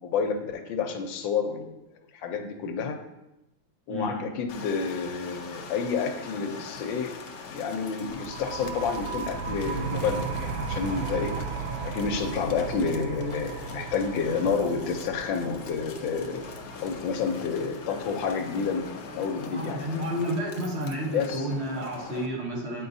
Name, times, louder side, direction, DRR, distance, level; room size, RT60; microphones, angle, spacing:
voice 1, 0.0-1.7 2.1-3.0 3.9-7.1 7.5-11.4 11.8-16.4 16.8-18.8 19.1-19.8 21.1-21.5, left 5 dB, 85° left, 5 dB, 1.4 m, -29 dB
voice 2, 3.9-4.2 19.5-22.9, equal, 45° right, -1 dB, 1.1 m, -31 dB
sound 1, 4.5-22.3, left 5 dB, 65° left, 0.9 m, -43 dB
sound 2, 8.1-19.5, right 5 dB, 70° right, 0.9 m, -36 dB
8.2 x 4.7 x 2.6 m, 0.91 s
omnidirectional pair, 2.0 m